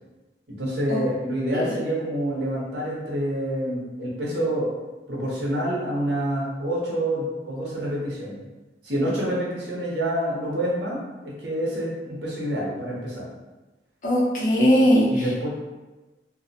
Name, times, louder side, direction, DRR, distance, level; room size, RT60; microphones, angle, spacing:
voice 1, 0.5-4.7 5.1-8.4 8.8-13.3 15.1-15.5, right 1 dB, 80° right, -5 dB, 0.8 m, -27 dB
voice 2, 14.0-15.1, equal, 45° left, -6 dB, 0.6 m, -19 dB
2.6 x 2.1 x 2.7 m, 1.1 s
head